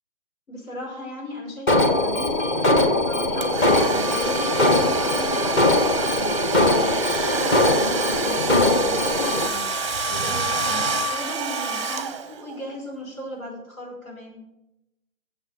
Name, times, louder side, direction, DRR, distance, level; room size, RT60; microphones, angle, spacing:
voice 1, 0.5-6.4 6.8-9.7 10.1-14.4, left 1 dB, 75° left, -2 dB, 5.5 m, -36 dB
Alarm, 1.7-9.5, left 1 dB, 15° left, 0.7 m, -21 dB
Domestic sounds home sounds, 3.4-12.6, right 4 dB, 25° right, 0.6 m, -28 dB
9.0 x 7.6 x 8.2 m, 0.90 s
figure-of-eight pair, 135°, 42 cm